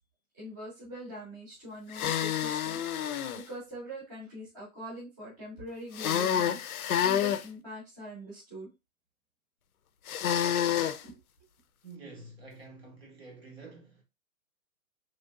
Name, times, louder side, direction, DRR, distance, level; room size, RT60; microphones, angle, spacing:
voice 1, 0.4-2.8 3.1-6.6 7.0-8.7 11.0-11.1, right 1 dB, 15° right, 0.8 m, -43 dB
sound 1, 1.9-3.4 5.9-7.4 10.1-11.0, left 10 dB, 70° left, 0.5 m, -28 dB
voice 2, 11.8-14.0, right 3 dB, 45° right, 0.9 m, -48 dB
3.2 x 2.6 x 2.3 m
hypercardioid pair, 175°, 44 cm